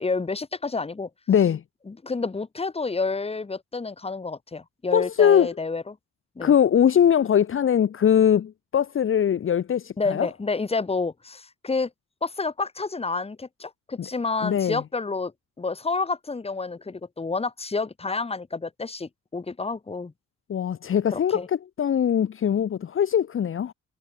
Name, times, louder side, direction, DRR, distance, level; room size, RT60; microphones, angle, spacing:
voice 1, 0.0-1.1 1.9-6.0 6.3-6.5 10.0-11.9 12.2-15.3 15.6-20.1 21.1-21.5, left 4 dB, 20° left, 1.6 m, -29 dB
voice 2, 1.3-1.6 4.9-5.5 6.4-10.3 14.4-14.8 20.5-23.7, left 9 dB, 45° left, 1.0 m, -21 dB
cardioid pair, 90°, 30 cm